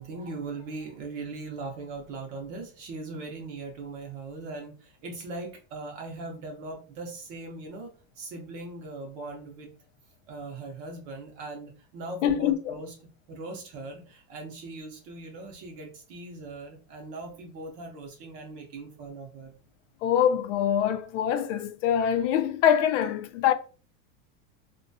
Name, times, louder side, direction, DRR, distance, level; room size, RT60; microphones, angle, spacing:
voice 1, 0.0-9.7 10.3-12.9 13.3-19.6, right 3 dB, 40° right, 0.6 m, -40 dB
voice 2, 12.2-12.8 20.0-23.5, left 9 dB, 65° left, 0.5 m, -24 dB
2.7 x 2.2 x 2.6 m
supercardioid pair, 160°, 39 cm